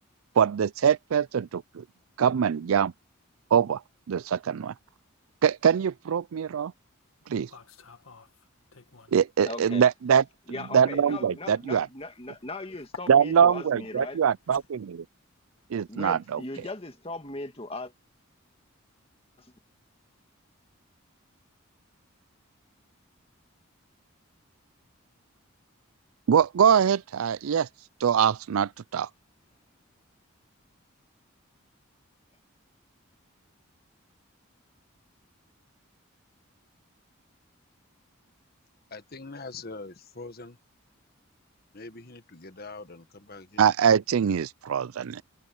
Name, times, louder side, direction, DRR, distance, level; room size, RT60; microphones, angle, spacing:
voice 1, 0.4-1.8 2.2-2.9 3.5-3.8 4.1-4.7 5.4-6.7 7.3-7.5 9.1-10.2 10.7-11.9 13.1-15.0 15.7-16.4 26.3-27.7 28.0-29.1 43.6-45.2, right 7 dB, 90° right, 0.4 m, -23 dB
sound 1, 7.2-9.3 9.6-17.4, left 4 dB, 85° left, 1.8 m, -52 dB
voice 2, 9.4-9.8 10.5-14.2 15.9-17.9 19.4-19.5, left 2 dB, 25° left, 2.1 m, -38 dB
voice 3, 38.9-40.6 41.7-43.7, left 3 dB, 45° left, 1.6 m, -43 dB
head